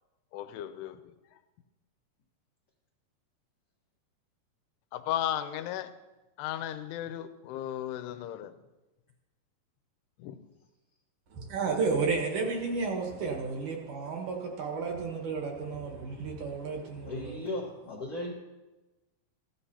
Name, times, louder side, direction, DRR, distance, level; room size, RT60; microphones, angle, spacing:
voice 1, 0.3-1.1 4.9-5.9 6.4-8.5 10.2-10.4, left 11 dB, 85° left, 2.7 m, -35 dB
voice 2, 11.3-17.4, right 4 dB, 60° right, 2.3 m, -32 dB
voice 3, 17.0-18.3, left 1 dB, 60° left, 1.7 m, -37 dB
15.5 x 12.0 x 2.8 m
omnidirectional pair, 4.7 m